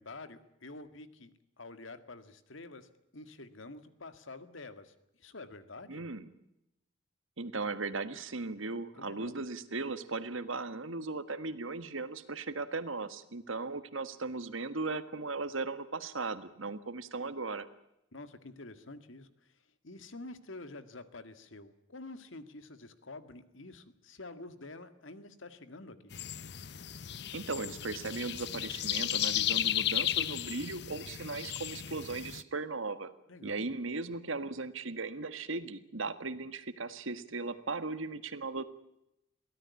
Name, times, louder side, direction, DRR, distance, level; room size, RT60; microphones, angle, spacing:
voice 1, 0.0-6.1 9.0-9.4 18.1-19.5 19.8-26.1 33.3-33.7, left 2 dB, 80° left, 11 dB, 2.0 m, -48 dB
voice 2, 5.9-6.3 7.4-17.7 27.3-33.1 33.4-38.6, right 3 dB, 85° right, 12 dB, 1.7 m, -37 dB
sound 1, 26.1-32.4, left 12 dB, 55° left, 0.7 m, -34 dB
23.5 x 17.0 x 8.3 m, 0.85 s
head